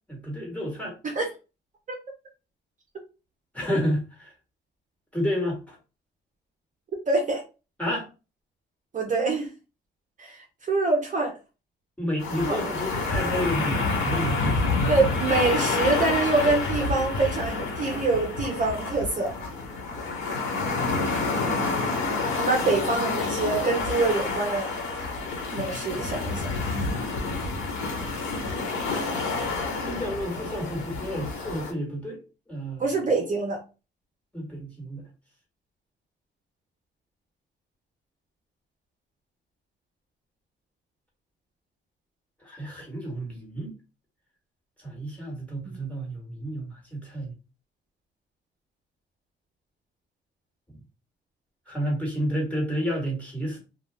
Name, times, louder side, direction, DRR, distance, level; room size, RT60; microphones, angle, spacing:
voice 1, 0.1-1.0 3.5-4.3 5.1-5.8 7.8-8.1 12.0-14.8 25.9-26.1 29.8-32.2 32.5-32.8 34.3-35.1 42.4-43.7 44.8-47.3 51.7-53.6, equal, 5° left, 1.6 m, -30 dB
voice 2, 7.1-7.4 8.9-9.5 10.2-11.3 12.4-12.6 14.9-19.3 22.4-24.7 25.5-26.5 32.8-33.6 45.7-45.8, right 3 dB, 40° right, 0.8 m, -25 dB
sound 1, 12.2-31.7, left 3 dB, 85° left, 1.2 m, -28 dB
2.5 x 2.3 x 3.3 m
cardioid pair, 90°, 20 cm